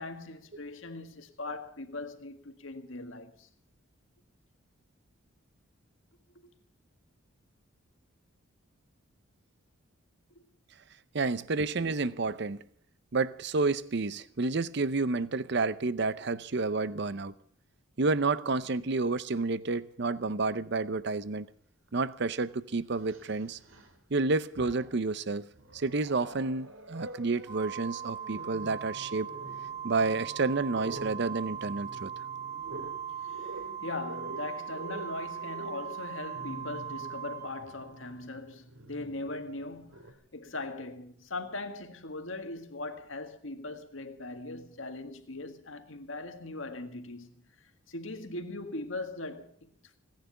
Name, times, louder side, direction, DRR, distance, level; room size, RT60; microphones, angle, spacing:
voice 1, 0.0-3.5 6.4-6.5 10.4-10.5 33.2-40.0 40.3-47.3 47.9-50.0, left 2 dB, 75° left, 1.8 m, -40 dB
voice 2, 11.1-12.6 13.1-17.3 18.0-21.5 21.9-23.6 24.1-25.5 25.7-29.3 29.8-32.1, right 3 dB, 55° right, 0.7 m, -30 dB
Growling, 21.9-22.0 22.9-24.0 24.4-25.1 25.5-40.1, right 1 dB, 80° right, 2.8 m, -47 dB
Organ, 27.5-38.2, right 8 dB, 20° right, 0.7 m, -40 dB
17.0 x 10.5 x 8.0 m
head